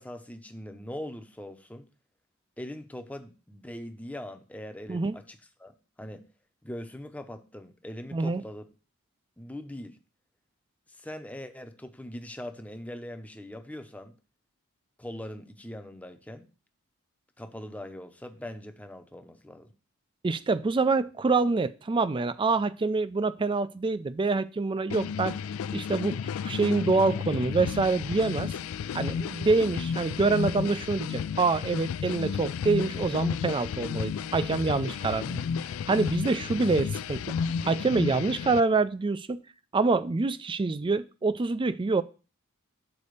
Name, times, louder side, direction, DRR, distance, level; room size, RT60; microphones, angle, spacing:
voice 1, 0.0-1.9 2.6-6.2 6.6-8.6 9.4-10.0 10.9-14.2 15.0-16.5 17.4-19.7, left 1 dB, 5° left, 0.7 m, -41 dB
voice 2, 8.1-8.4 20.2-25.4 25.7-28.5 28.9-35.4 35.9-37.2 37.6-39.4 39.7-42.0, right 3 dB, 25° right, 0.3 m, -26 dB
sound 1, 24.9-38.6, left 6 dB, 70° left, 0.3 m, -32 dB
6.9 x 4.1 x 6.4 m
head